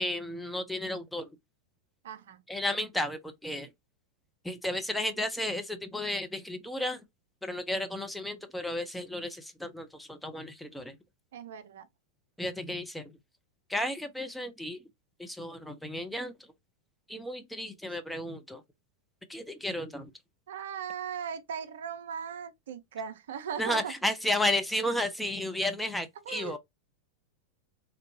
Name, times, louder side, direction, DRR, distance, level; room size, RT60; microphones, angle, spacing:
voice 1, 0.0-1.4 2.5-3.7 4.4-7.0 7.4-11.0 12.4-13.2 13.7-14.8 15.2-16.3 17.1-18.6 19.3-20.1 23.6-26.6, left 1 dB, 5° left, 0.6 m, -33 dB
voice 2, 2.0-2.4 11.3-11.9 20.5-23.9 26.3-26.6, right 8 dB, 60° right, 0.5 m, -38 dB
3.3 x 2.5 x 2.8 m
figure-of-eight pair, 90°, 0 cm